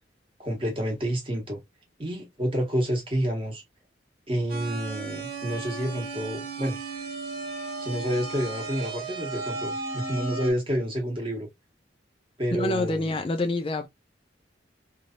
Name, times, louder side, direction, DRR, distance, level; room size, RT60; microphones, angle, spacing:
voice 1, 0.4-1.6 2.0-3.6 4.3-6.8 7.8-11.5 12.4-13.2, equal, 30° right, 1.4 m, -29 dB
sound 1, 4.5-10.5, right 3 dB, 55° right, 1.4 m, -35 dB
voice 2, 12.6-13.9, left 2 dB, 30° left, 0.4 m, -27 dB
3.2 x 2.7 x 2.5 m
head